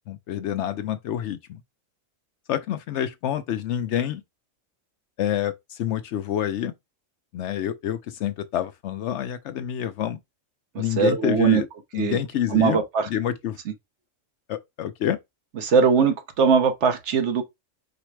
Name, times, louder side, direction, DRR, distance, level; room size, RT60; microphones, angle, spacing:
voice 1, 0.1-1.6 2.5-4.2 5.2-6.7 7.3-10.2 10.8-11.7 11.9-12.8 13.1-13.6 14.5-15.2, left 10 dB, 65° left, 0.8 m, -27 dB
voice 2, 10.7-11.6 12.0-12.2 12.5-13.1 15.6-17.4, right 6 dB, 65° right, 1.0 m, -20 dB
4.9 x 2.1 x 4.5 m
omnidirectional pair, 1.4 m